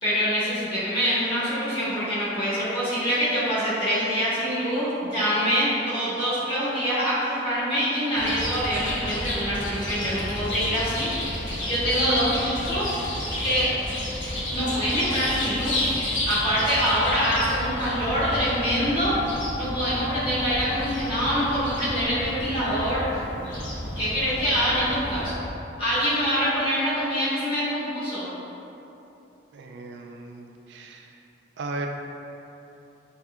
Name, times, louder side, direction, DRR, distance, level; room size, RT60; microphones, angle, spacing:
voice 1, 0.0-13.7 14.5-16.0 16.3-23.0 23.9-25.4 25.8-28.3, equal, 25° left, -11 dB, 1.5 m, -25 dB
Chirp tweet, 8.2-25.3, left 1 dB, 85° left, 1.0 m, -31 dB
voice 2, 29.5-31.1 31.6-31.9, right 3 dB, 65° right, 2 dB, 0.3 m, -36 dB
5.6 x 3.3 x 2.3 m, 3.0 s
head